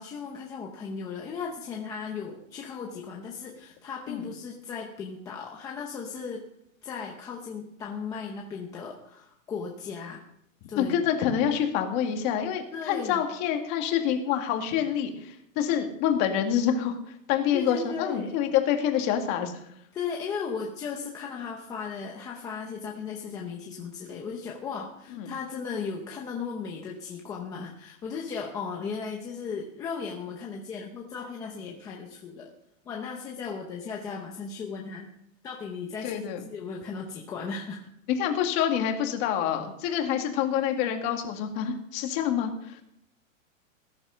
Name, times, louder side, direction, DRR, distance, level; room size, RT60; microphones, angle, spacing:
voice 1, 0.0-6.4 6.8-10.2 10.7-10.9 12.7-13.2 17.5-18.3 19.9-32.5 32.9-35.1 35.4-37.8, left 5 dB, 10° left, -1 dB, 0.8 m, -36 dB
voice 2, 10.8-19.5 25.2-25.3 36.0-36.4 38.1-42.8, left 9 dB, 25° left, 4 dB, 2.0 m, -27 dB
19.5 x 10.5 x 5.7 m, 0.76 s
hypercardioid pair, 170°, 41 cm